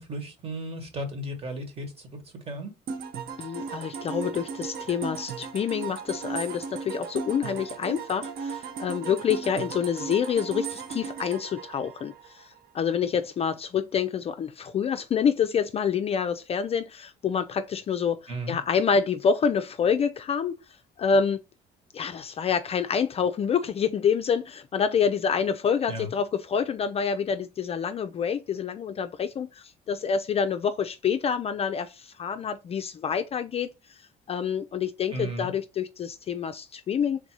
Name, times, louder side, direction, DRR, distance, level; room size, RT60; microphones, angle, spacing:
voice 1, 0.0-2.7 18.3-18.6 25.9-26.1 35.1-35.5, right 1 dB, 35° right, 1.4 m, -35 dB
sound 1, 2.9-12.6, right 6 dB, 65° right, 0.7 m, -36 dB
voice 2, 3.4-18.2 18.5-20.6 21.0-21.4 21.9-34.0 34.3-37.2, left 7 dB, 35° left, 0.4 m, -27 dB
3.5 x 2.6 x 4.6 m
cardioid pair, 110°, 17 cm